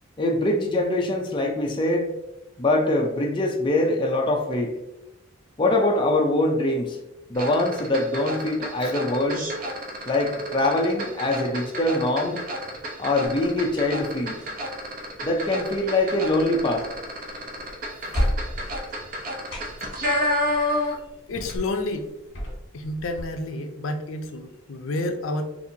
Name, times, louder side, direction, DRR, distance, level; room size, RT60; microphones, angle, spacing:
voice 1, 0.2-2.1 2.6-4.8 5.6-7.0 7.3-9.5 10.0-12.4 13.0-14.4 15.2-16.9, left 1 dB, 25° left, 0 dB, 0.4 m, -23 dB
sound 1, 7.3-21.1 21.4-21.6, equal, 40° right, 0.6 m, -30 dB
sound 2, 13.2-23.2, equal, 60° left, 1.4 m, -35 dB
voice 2, 21.3-22.1 22.7-25.5, left 2 dB, 80° left, 6 dB, 0.5 m, -30 dB
4.1 x 2.5 x 2.7 m, 0.92 s
head